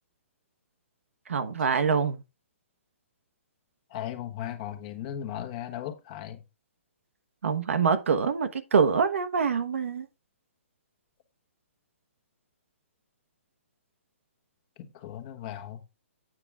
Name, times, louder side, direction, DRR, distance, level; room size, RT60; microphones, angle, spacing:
voice 1, 1.3-2.2 7.4-10.1, right 6 dB, 75° right, 1.1 m, -25 dB
voice 2, 3.9-6.4 14.8-15.8, left 11 dB, 35° left, 1.3 m, -37 dB
8.8 x 5.9 x 3.5 m
hypercardioid pair, 150°, 7 cm